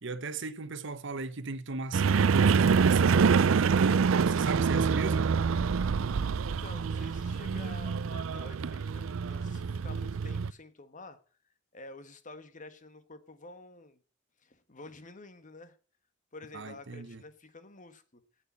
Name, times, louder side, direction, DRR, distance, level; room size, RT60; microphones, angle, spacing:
voice 1, 0.0-5.3 16.5-17.2, right 3 dB, 65° right, 1.1 m, -37 dB
sound 1, 1.9-10.5, right 5 dB, 85° right, 0.5 m, -26 dB
voice 2, 6.5-11.2 11.7-14.0 14.4-15.8 16.3-18.2, left 3 dB, 40° left, 1.5 m, -49 dB
9.0 x 8.3 x 8.5 m
head